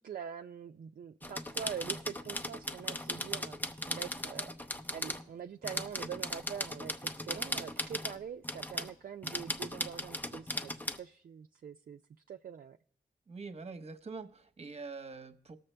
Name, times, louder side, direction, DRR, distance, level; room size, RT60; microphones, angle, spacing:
voice 1, 0.0-10.7 11.0-12.0 12.3-12.8, right 8 dB, 55° right, 5 dB, 0.4 m, -44 dB
sound 1, 1.2-5.2 5.6-8.2 8.4-8.9 9.2-11.0, left 1 dB, 10° left, 0.7 m, -38 dB
voice 2, 13.3-15.6, right 4 dB, 40° right, 10 dB, 1.0 m, -44 dB
18.5 x 6.8 x 3.3 m, 0.62 s
cardioid pair, 50°, 17 cm